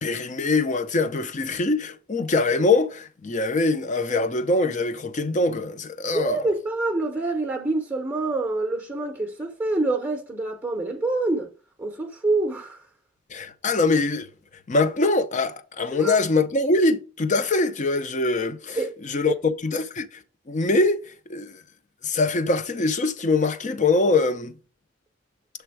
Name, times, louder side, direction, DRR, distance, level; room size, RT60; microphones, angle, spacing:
voice 1, 0.0-6.4 13.3-14.3 14.7-20.1 20.5-21.0 21.3-21.5 22.0-24.6, left 3 dB, 40° left, 0.6 m, -23 dB
voice 2, 6.1-11.5 11.8-12.8 15.9-16.2 18.8-18.9, right 2 dB, 10° right, 0.7 m, -26 dB
7.0 x 3.4 x 4.7 m
head